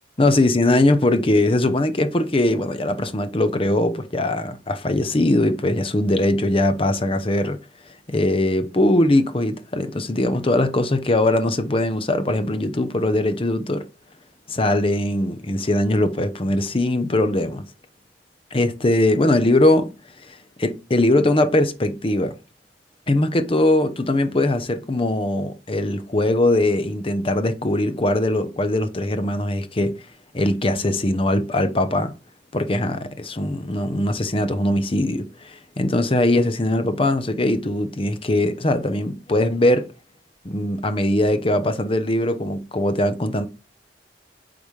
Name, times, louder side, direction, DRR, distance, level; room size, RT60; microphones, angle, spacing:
voice 1, 0.2-7.6 8.1-13.8 14.5-17.6 18.5-19.9 20.2-22.3 23.1-29.9 30.3-32.1 32.5-39.9 40.4-43.5, left 1 dB, 30° left, 0.7 m, -21 dB
8.3 x 4.0 x 3.2 m
head